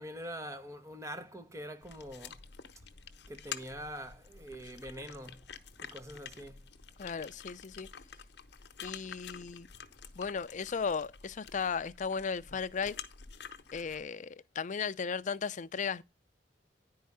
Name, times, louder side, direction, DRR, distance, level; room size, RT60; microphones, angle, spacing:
voice 1, 0.0-2.3 3.3-5.4 5.8-6.6, equal, 15° right, 1.0 m, -44 dB
sound 1, 1.8-14.0, left 7 dB, 70° left, 0.9 m, -49 dB
voice 2, 7.0-7.9 8.8-9.7 10.2-13.0 13.7-16.0, left 6 dB, 45° left, 0.4 m, -35 dB
10.5 x 4.7 x 5.5 m
head